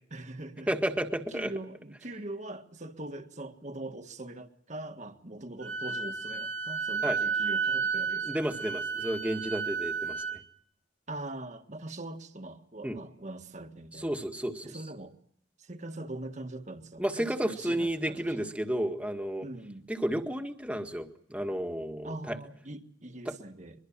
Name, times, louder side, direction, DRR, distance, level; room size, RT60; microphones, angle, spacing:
voice 1, 0.1-0.7 1.3-8.7 11.1-14.1 14.6-15.1 15.6-18.5 19.4-19.9 22.0-23.8, right 2 dB, 40° right, 1.6 m, -42 dB
voice 2, 0.7-1.5 7.0-7.2 8.2-10.4 12.8-13.0 14.0-14.8 17.0-19.5 19.9-22.4 23.2-23.3, right 1 dB, 5° right, 1.7 m, -32 dB
Wind instrument woodwind instrument, 5.6-10.4, right 5 dB, 85° right, 2.8 m, -32 dB
23.5 x 23.0 x 7.4 m
head